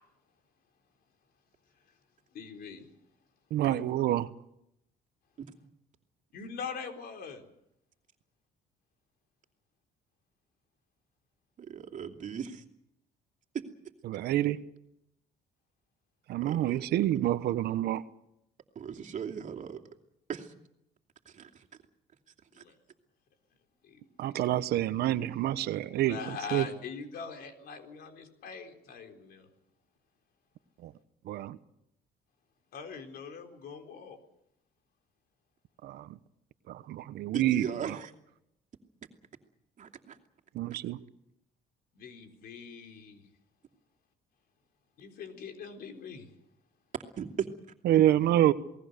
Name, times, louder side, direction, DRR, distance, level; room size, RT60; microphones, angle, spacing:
voice 1, 2.3-2.9 3.6-3.8 6.3-7.4 22.5-22.7 23.8-24.4 25.8-29.5 32.7-34.2 41.9-43.3 45.0-46.3, left 5 dB, 65° left, 4.1 m, -43 dB
voice 2, 3.5-4.3 14.1-14.6 16.3-18.0 24.2-26.2 26.5-26.6 30.8-30.9 31.3-31.6 35.8-36.1 36.7-37.6 40.5-41.0 47.8-48.5, right 13 dB, 75° right, 1.1 m, -27 dB
voice 3, 11.6-12.6 13.5-13.6 16.4-17.0 18.7-19.8 20.3-20.5 21.2-21.7 22.5-22.6 37.3-38.1 39.8-40.2 47.2-47.5, right 8 dB, 50° right, 2.7 m, -38 dB
28.0 x 19.0 x 6.8 m
cardioid pair, 110°, 17 cm